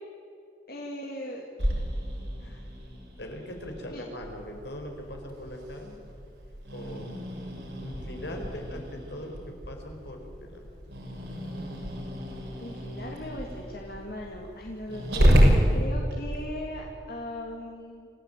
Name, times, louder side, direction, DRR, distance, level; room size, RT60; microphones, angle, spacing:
voice 1, 0.7-1.5 3.9-4.0 12.6-18.1, left 1 dB, 55° left, 0 dB, 2.4 m, -39 dB
Growling, 1.6-16.4, equal, 90° right, 6.7 m, -29 dB
voice 2, 3.2-6.0 6.7-7.2 7.8-10.6, left 1 dB, 75° left, 2 dB, 4.7 m, -40 dB
27.5 x 15.5 x 9.0 m, 2.6 s
head